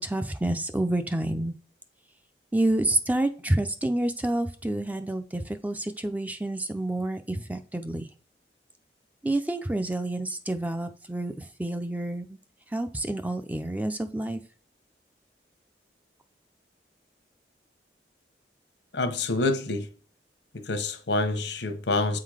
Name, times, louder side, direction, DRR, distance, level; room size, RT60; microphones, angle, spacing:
voice 1, 0.0-1.5 2.5-8.1 9.2-12.4 12.7-14.4, right 1 dB, 10° right, 0.4 m, -28 dB
voice 2, 18.9-19.9 20.5-22.2, left 2 dB, 85° left, 1.0 m, -27 dB
8.0 x 3.8 x 4.9 m
head